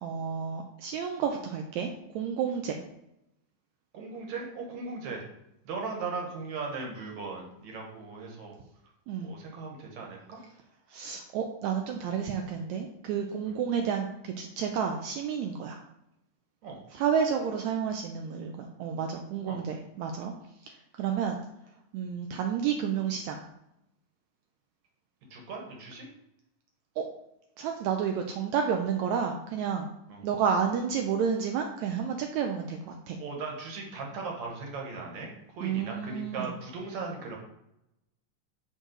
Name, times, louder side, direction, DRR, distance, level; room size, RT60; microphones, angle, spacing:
voice 1, 0.0-2.8 9.1-9.3 10.9-15.8 16.9-20.3 21.0-21.4 21.9-23.4 27.0-27.1 27.6-29.9 30.2-33.2 35.6-36.5, right 7 dB, 90° right, 4 dB, 1.6 m, -30 dB
voice 2, 3.9-5.2 5.6-8.6 9.2-10.4 13.4-13.6 16.6-16.8 19.5-19.6 25.3-26.1 30.1-30.3 33.2-37.4, right 4 dB, 65° right, 1 dB, 2.3 m, -38 dB
6.4 x 3.9 x 6.3 m, 0.83 s
omnidirectional pair, 3.9 m